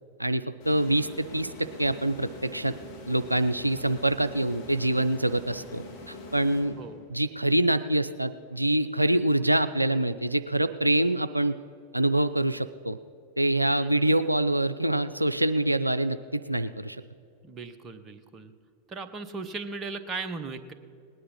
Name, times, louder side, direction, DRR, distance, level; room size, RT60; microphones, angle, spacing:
voice 1, 0.2-2.7 3.1-6.8 7.1-11.6 11.9-13.0 13.4-17.0, right 1 dB, 85° right, 11 dB, 0.3 m, -25 dB
sound 1, 0.6-7.2, left 2 dB, 50° left, 2.7 m, -44 dB
voice 2, 13.8-14.1 17.4-18.5 18.9-20.7, right 4 dB, 25° right, 9 dB, 1.0 m, -37 dB
18.5 x 9.9 x 5.6 m, 2.5 s
figure-of-eight pair, 90°, 0 cm